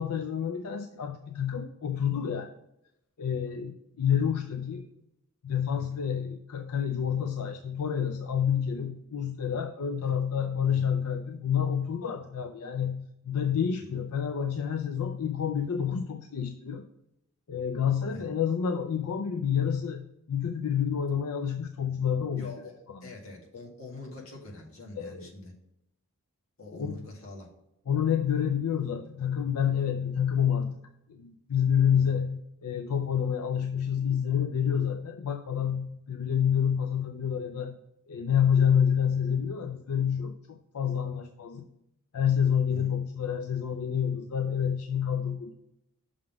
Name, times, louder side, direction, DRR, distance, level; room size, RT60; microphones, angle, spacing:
voice 1, 0.0-2.5 3.2-4.9 5.4-16.9 17.5-22.5 22.9-23.1 25.0-25.3 26.7-27.0 27.9-30.8 31.1-37.8 38.1-41.7 42.1-45.6, left 8 dB, 90° left, 6 dB, 0.5 m, -28 dB
voice 2, 22.4-22.7 23.0-25.5 26.6-27.5 42.7-42.9, left 2 dB, 70° left, -2 dB, 1.8 m, -44 dB
6.3 x 3.9 x 5.8 m, 0.84 s
head